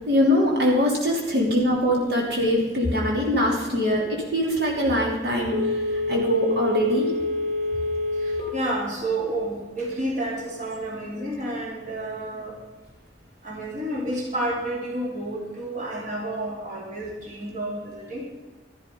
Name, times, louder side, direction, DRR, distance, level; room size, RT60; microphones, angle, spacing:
voice 1, 0.1-5.6 6.1-7.1, left 1 dB, 65° right, -2 dB, 3.1 m, -22 dB
Telephone, 5.5-8.6 9.0-9.1, left 2 dB, 85° right, 4.6 m, -26 dB
voice 2, 8.2-12.6 13.4-18.3, right 1 dB, 45° right, -1 dB, 3.2 m, -30 dB
13.0 x 12.5 x 5.3 m, 1.2 s
head